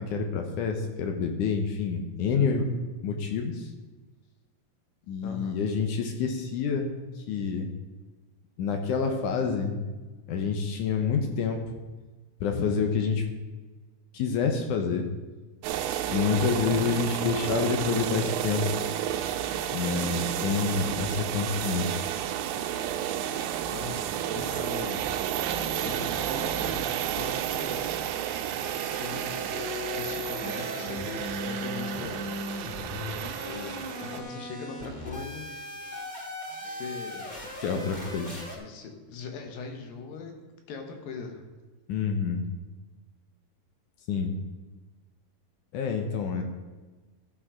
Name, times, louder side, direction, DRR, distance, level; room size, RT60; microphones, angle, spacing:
voice 1, 0.0-2.7 3.0-3.7 5.1-7.0 7.3-7.7 8.6-9.8 10.3-11.6 12.4-13.3 14.1-15.1 16.1-18.6 19.7-21.9 37.6-38.4 41.9-42.5 44.1-44.3 45.7-46.4, left 5 dB, 70° left, 4 dB, 2.2 m, -28 dB
voice 2, 5.2-5.6 20.8-21.0 23.7-25.0 25.8-26.9 27.2-28.1 28.9-29.5 29.9-32.3 33.2-35.5 36.6-37.3 38.5-40.3 40.7-41.5, left 5 dB, 90° left, 4 dB, 3.1 m, -40 dB
sound 1, 15.6-34.2, right 10 dB, 85° right, 2.4 m, -31 dB
sound 2, 28.6-38.6, left 2 dB, 25° left, 1.1 m, -38 dB
14.0 x 6.1 x 4.9 m, 1.3 s
omnidirectional pair, 4.0 m